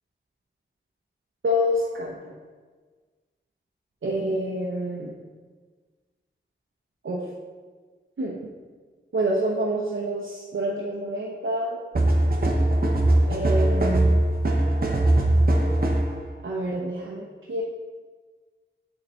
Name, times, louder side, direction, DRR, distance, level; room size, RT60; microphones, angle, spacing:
voice 1, 1.4-2.3 4.0-5.1 7.0-7.2 8.2-8.4 9.1-11.8 13.3-14.2 16.4-17.6, equal, 85° right, -5 dB, 0.9 m, -27 dB
sound 1, 11.9-16.2, right 1 dB, 50° right, 1.0 m, -20 dB
8.9 x 3.8 x 4.4 m, 1.5 s
wide cardioid pair, 90°, 20 cm